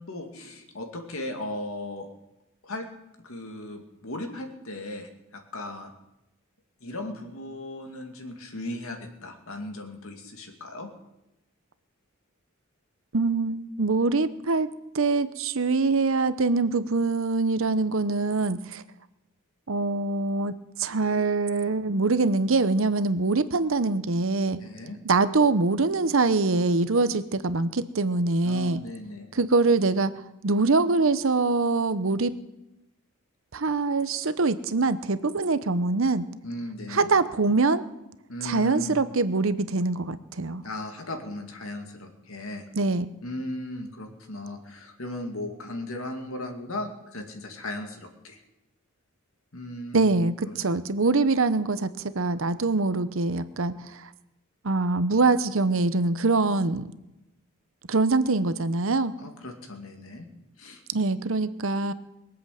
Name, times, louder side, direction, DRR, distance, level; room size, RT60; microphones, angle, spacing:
voice 1, 0.0-2.1 2.6-2.9 3.2-5.9 6.8-10.9 24.6-25.0 28.4-29.4 36.4-37.1 38.3-39.0 40.6-42.7 43.2-48.4 49.5-50.1 50.4-50.6 59.2-60.3 60.6-60.8, left 1 dB, 70° left, 4 dB, 2.3 m, -37 dB
voice 2, 13.1-14.7 14.9-18.8 19.7-24.6 25.0-28.8 29.3-30.1 30.4-32.3 33.5-36.2 36.9-37.8 38.4-40.6 42.7-43.1 49.9-54.1 54.6-56.8 57.9-59.1 60.9-61.9, right 3 dB, 60° right, 13 dB, 0.8 m, -24 dB
22.0 x 8.1 x 7.6 m, 0.93 s
head